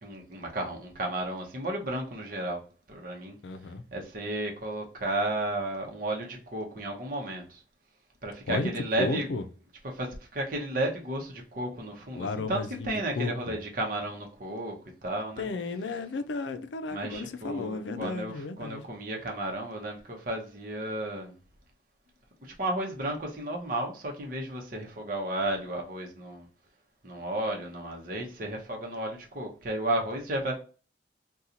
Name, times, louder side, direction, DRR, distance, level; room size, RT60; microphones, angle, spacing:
voice 1, 0.0-2.6 2.9-3.4 3.9-7.6 8.2-9.3 9.9-14.8 15.0-15.5 16.9-21.4 22.4-26.5 27.0-30.6, right 1 dB, 50° right, 0.8 m, -33 dB
voice 2, 3.4-3.8 8.5-8.7 9.0-9.4 12.1-13.6 15.4-18.8, left 3 dB, 90° left, 0.4 m, -33 dB
2.8 x 2.3 x 3.8 m
head